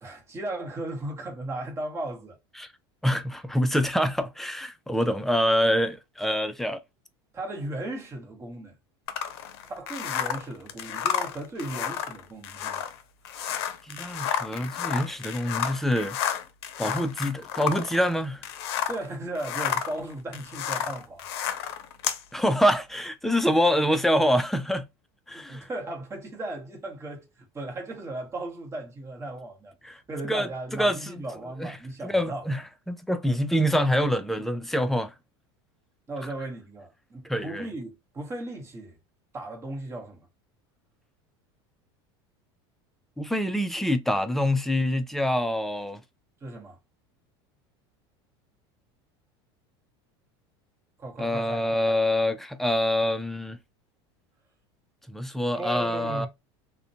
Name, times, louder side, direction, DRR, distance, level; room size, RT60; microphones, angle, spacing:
voice 1, 0.0-2.4 7.3-8.7 9.6-12.8 18.9-21.2 25.3-27.3 27.5-29.7 30.1-32.4 36.1-39.0 39.3-40.3 46.4-46.8 51.0-51.6 55.5-56.3, right 2 dB, 20° right, 0.9 m, -36 dB
voice 2, 3.0-6.8 13.9-16.2 16.8-18.4 22.3-24.9 25.3-25.7 29.8-30.0 30.3-30.5 30.8-31.1 31.6-31.8 32.0-35.1 37.2-37.7 43.2-46.0 51.2-53.6 55.1-56.3, equal, ahead, 0.3 m, -25 dB
sound 1, 9.1-19.1 19.3-22.2, left 9 dB, 80° left, 0.5 m, -31 dB
2.5 x 2.1 x 2.7 m
supercardioid pair, 115°, 13 cm